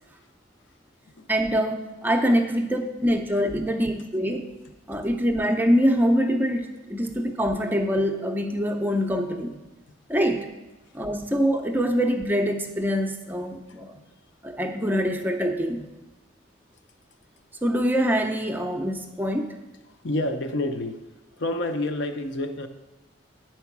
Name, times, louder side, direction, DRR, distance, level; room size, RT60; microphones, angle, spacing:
voice 1, 1.3-4.5 4.9-9.6 10.1-10.5 10.9-14.0 14.4-15.9 17.6-19.6, equal, 10° right, 4 dB, 0.5 m, -24 dB
voice 2, 20.0-21.0 21.4-22.7, left 1 dB, 65° left, 7 dB, 0.7 m, -28 dB
9.4 x 4.5 x 5.9 m, 1.1 s
head